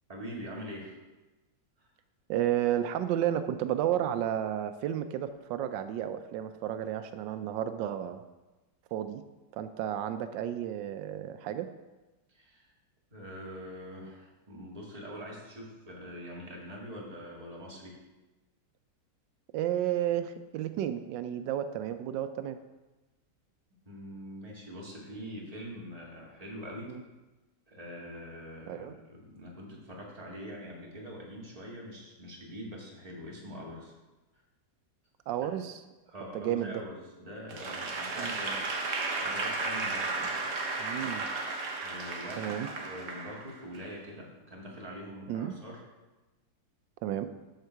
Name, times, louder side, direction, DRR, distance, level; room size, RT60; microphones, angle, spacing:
voice 1, 0.1-1.0 1.8-1.9 12.3-12.7 13.1-18.0 23.9-26.9 27.7-33.9 35.4-35.5 36.0-38.9 39.2-40.5 41.8-45.8, equal, 20° right, -3 dB, 2.0 m, -44 dB
voice 2, 2.3-8.2 8.9-9.2 9.5-11.7 19.5-22.6 26.9-27.0 28.7-28.9 35.3-35.8 36.3-36.8 38.2-38.3 40.8-41.3 42.4-42.7 45.3-45.5 47.0-47.3, right 11 dB, 90° right, 10 dB, 1.3 m, -32 dB
Applause / Crowd, 37.5-43.8, right 3 dB, 50° right, 1.2 m, -34 dB
13.5 x 4.6 x 4.5 m, 1.1 s
omnidirectional pair, 1.9 m